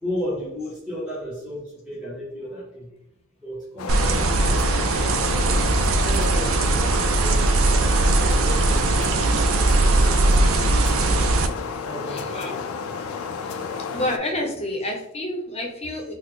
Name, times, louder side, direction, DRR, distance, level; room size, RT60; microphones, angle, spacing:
voice 1, 0.0-2.9 3.4-4.2 5.2-5.7 6.0-10.8 11.8-12.6 14.3-14.5, equal, 5° right, -8 dB, 0.8 m, -35 dB
sound 1, 3.8-14.2, left 5 dB, 85° left, 0.3 m, -31 dB
sound 2, 3.9-11.5, right 2 dB, 80° right, 0.4 m, -20 dB
voice 2, 12.0-12.6 13.7-16.1, left 1 dB, 30° left, 1 dB, 0.7 m, -29 dB
3.9 x 2.0 x 3.1 m, 0.76 s
head